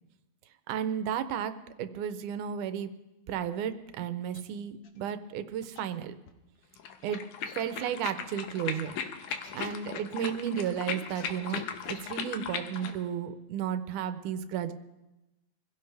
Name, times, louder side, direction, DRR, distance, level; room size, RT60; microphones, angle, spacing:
voice 1, 0.7-2.9 3.3-6.1 7.0-7.2 7.6-9.0 9.5-14.7, right 9 dB, 85° right, 10 dB, 2.3 m, -33 dB
sound 1, 4.3-4.4 4.8-5.0 5.6-5.8 6.3-6.4 7.5-7.6 7.9-8.0 9.2-9.7 10.6-11.2 11.5-11.6 11.9-12.2 12.5-12.6 12.8-12.9, left 6 dB, 65° left, 2.5 m, -50 dB
sound 2, 6.8-13.0, left 7 dB, 85° left, 2.5 m, -37 dB
26.0 x 16.0 x 3.4 m, 1.0 s
omnidirectional pair, 3.5 m